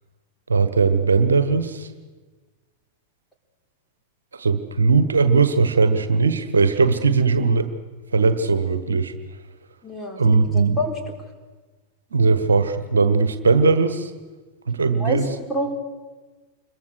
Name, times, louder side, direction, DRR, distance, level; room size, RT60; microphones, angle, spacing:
voice 1, 0.5-1.9 4.3-7.7 8.1-9.2 10.2-10.8 12.1-14.1 14.7-15.3, right 4 dB, 70° right, 11 dB, 1.4 m, -19 dB
voice 2, 9.8-10.2 10.5-10.9 14.9-15.2 15.5-15.7, equal, 10° left, 2 dB, 4.1 m, -26 dB
26.0 x 22.5 x 6.5 m, 1.3 s
figure-of-eight pair, 90°, 0 cm